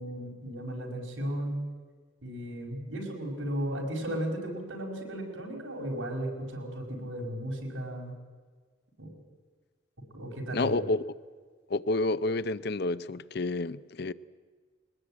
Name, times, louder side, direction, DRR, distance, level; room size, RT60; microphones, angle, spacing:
voice 1, 0.0-1.6 2.2-8.1 9.0-9.1 10.1-10.8, right 1 dB, 85° right, 5.3 m, -35 dB
voice 2, 10.5-11.0 11.7-14.1, left 2 dB, 55° left, 0.6 m, -29 dB
21.5 x 19.5 x 8.8 m
head